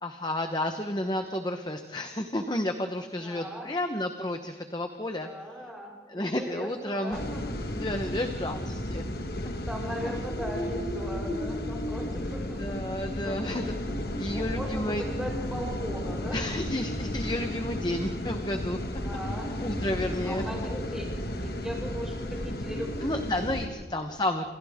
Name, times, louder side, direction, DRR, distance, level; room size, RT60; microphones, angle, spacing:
voice 1, 0.0-5.3 6.1-7.2 7.7-9.0 10.0-10.1 12.1-13.7 14.2-15.0 16.3-18.8 19.6-20.4 23.0-24.5, left 1 dB, 25° left, 6 dB, 1.0 m, -31 dB
voice 2, 3.2-3.7 5.2-7.6 9.7-12.9 13.2-13.8 14.3-16.4 19.0-19.5 20.2-23.4, equal, 5° right, -2 dB, 5.8 m, -38 dB
sound 1, 7.1-23.7, left 1 dB, 60° left, 1.8 m, -34 dB
sound 2, 7.2-23.2, equal, 80° left, 4.1 m, -41 dB
28.0 x 27.5 x 3.7 m, 1.3 s
head